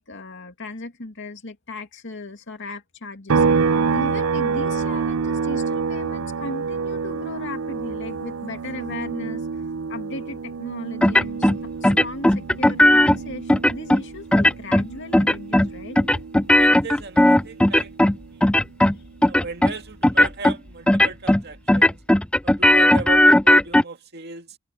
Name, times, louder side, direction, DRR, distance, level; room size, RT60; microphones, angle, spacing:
voice 1, 0.0-9.6 9.9-11.5 11.8-16.0, left 2 dB, 60° left, 2.4 m, -37 dB
sound 1, 3.3-16.8 17.2-19.4, right 5 dB, 80° right, 0.6 m, -27 dB
sound 2, 11.0-11.6 11.8-13.2 13.5-14.0 14.3-14.9 15.1-15.7 16.0-18.2 18.4-18.9 19.2-19.7 20.0-20.5 20.9-21.4 21.7-23.8, left 1 dB, 5° left, 0.3 m, -16 dB
voice 2, 16.5-18.5 19.2-22.0 22.4-24.6, right 3 dB, 50° right, 2.1 m, -36 dB
head